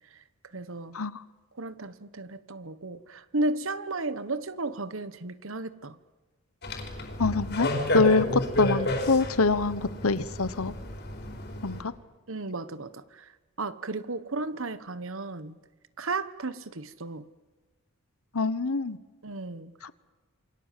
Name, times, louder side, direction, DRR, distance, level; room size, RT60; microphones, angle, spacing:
voice 1, 0.1-1.0 1.5-6.0 12.3-15.5 16.0-17.3 19.2-19.7, right 2 dB, 65° right, 1.2 m, -34 dB
sound 1, 6.6-11.8, left 1 dB, 45° left, 4.6 m, -31 dB
voice 2, 7.2-10.7 11.6-11.9 18.3-19.0 19.8-19.9, left 3 dB, 75° left, 1.1 m, -25 dB
28.0 x 23.0 x 7.5 m
head